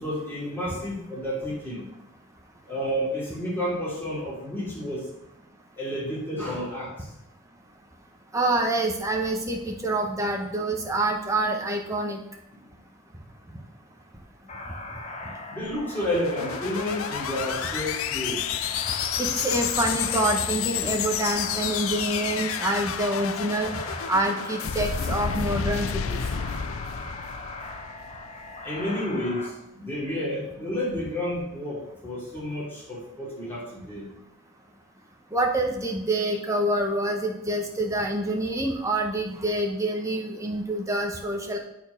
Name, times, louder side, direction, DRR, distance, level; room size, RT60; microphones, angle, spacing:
voice 1, 0.0-1.9 2.7-5.0 5.8-7.1 12.5-12.6 15.5-18.4 28.6-34.1, left 1 dB, 10° left, -7 dB, 2.9 m, -31 dB
voice 2, 8.3-12.2 19.2-23.8 24.1-26.2 35.3-41.6, right 1 dB, 15° right, 2 dB, 1.0 m, -26 dB
sound 1, 14.5-29.5, left 2 dB, 30° left, 0.9 m, -39 dB
sound 2, 15.9-28.3, left 8 dB, 70° left, 0.5 m, -30 dB
8.5 x 4.5 x 5.1 m, 0.84 s
head